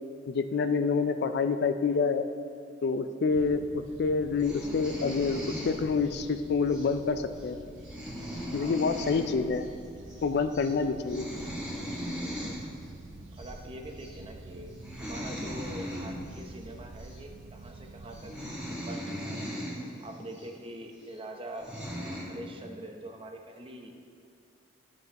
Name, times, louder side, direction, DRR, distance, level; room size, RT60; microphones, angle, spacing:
voice 1, 0.3-2.2 2.8-7.6 8.5-9.6 10.2-11.3, left 4 dB, 55° left, 9 dB, 0.4 m, -27 dB
sound 1, 3.3-18.5, right 2 dB, 65° right, 0.5 m, -48 dB
sound 2, 4.4-6.2 6.7-6.9 7.3-7.4 7.7-9.3 9.5-9.7 10.0-10.2 10.5-10.7 11.0-12.6 13.4-13.5 14.0-14.2 14.7-16.4 17.0-17.2 17.8-17.9 18.1-19.8 20.3-20.4 21.1-21.2 21.5-22.2, equal, 5° right, 2.1 m, -38 dB
voice 2, 12.1-12.6 13.4-18.3 18.7-19.5 20.0-23.9, right 1 dB, 30° right, 3 dB, 0.7 m, -44 dB
13.0 x 7.8 x 3.0 m, 2.3 s
head